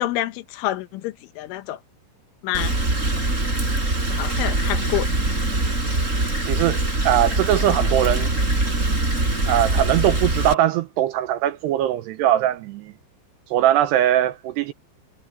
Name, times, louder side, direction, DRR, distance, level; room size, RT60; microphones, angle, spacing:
voice 1, 0.0-1.8 2.4-2.8 4.1-5.1, left 15 dB, 85° left, 3.7 m, -27 dB
Rain, 2.5-10.5, right 2 dB, 15° right, 4.5 m, -23 dB
voice 2, 6.4-8.3 9.5-12.9 13.5-14.7, right 12 dB, 80° right, 2.5 m, -21 dB
omnidirectional pair, 5.5 m